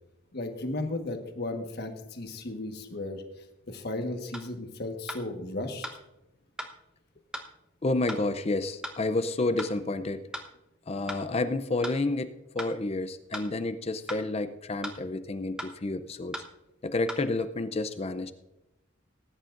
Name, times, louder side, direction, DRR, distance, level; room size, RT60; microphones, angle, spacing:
voice 1, 0.3-3.2 3.7-5.9, left 2 dB, 50° left, 5 dB, 1.4 m, -35 dB
sound 1, 4.3-4.5 5.1-5.2 5.8-6.0 6.6-6.7 7.3-7.5 8.1-8.2 8.8-9.0 9.6-9.7 10.3-10.5 11.1-11.2 11.8-12.0 12.6-12.7 13.3-13.5 14.1-14.2 14.8-15.0 15.6-15.7 16.3-16.5 17.1-17.2, equal, 5° right, 1.0 m, -37 dB
voice 2, 7.8-10.2 10.9-16.4 16.8-18.3, left 2 dB, 30° left, 11 dB, 0.5 m, -30 dB
19.0 x 10.5 x 2.6 m, 0.94 s
head